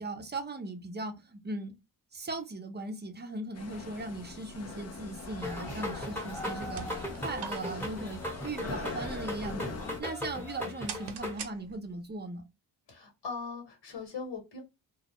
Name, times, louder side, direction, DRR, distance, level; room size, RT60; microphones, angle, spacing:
voice 1, 0.0-1.7 2.1-12.4, right 2 dB, 25° right, 0.5 m, -38 dB
sound 1, 3.5-10.0, left 4 dB, 40° left, 0.5 m, -42 dB
sound 2, 5.4-11.4, left 1 dB, 5° left, 0.9 m, -38 dB
voice 2, 5.6-6.2 12.9-14.6, left 4 dB, 75° left, 1.3 m, -41 dB
sound 3, 6.6-12.1, right 7 dB, 70° right, 0.7 m, -47 dB
2.3 x 2.0 x 2.8 m
wide cardioid pair, 105°, 41 cm